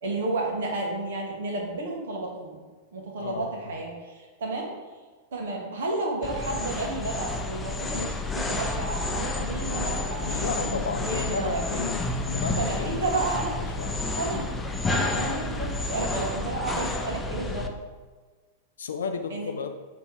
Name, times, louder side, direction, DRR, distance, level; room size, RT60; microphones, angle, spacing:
voice 1, 0.0-2.6 2.9-4.7 5.3-11.6 12.6-13.6 14.2-14.5 14.9-17.7 19.3-19.5, right 2 dB, 65° right, -1 dB, 1.7 m, -31 dB
sound 1, 6.2-17.7, left 2 dB, 10° left, 0.6 m, -30 dB
voice 2, 10.2-13.0 13.8-14.0 18.8-19.8, left 5 dB, 70° left, 7 dB, 0.4 m, -33 dB
7.0 x 3.4 x 4.9 m, 1.4 s
figure-of-eight pair, 95°, 0 cm